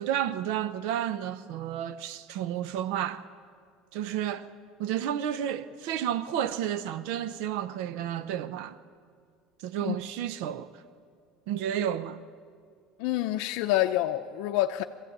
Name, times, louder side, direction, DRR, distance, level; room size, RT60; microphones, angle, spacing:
voice 1, 0.0-3.2 3.9-4.5 4.8-8.8 9.6-10.7 11.5-12.2, right 10 dB, 70° right, 0.7 m, -31 dB
voice 2, 13.0-14.8, left 14 dB, 70° left, 0.6 m, -27 dB
23.0 x 15.5 x 8.7 m
cardioid pair, 150°, 0 cm